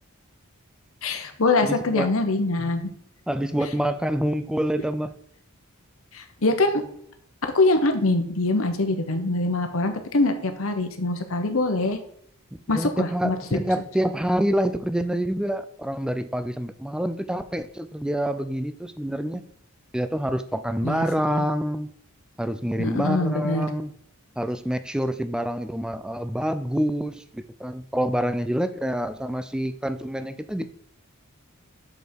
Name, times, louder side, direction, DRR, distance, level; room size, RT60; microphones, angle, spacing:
voice 1, 1.0-2.9 6.1-6.8 7.5-12.0 12.7-13.6 20.8-21.0 21.3-21.4 22.8-23.7, left 2 dB, 65° left, 6 dB, 1.0 m, -23 dB
voice 2, 1.6-2.1 3.3-5.1 12.5-19.4 19.9-21.9 22.4-23.9 24.4-30.7, equal, 5° right, 11 dB, 0.3 m, -27 dB
6.3 x 5.4 x 4.5 m, 0.66 s
head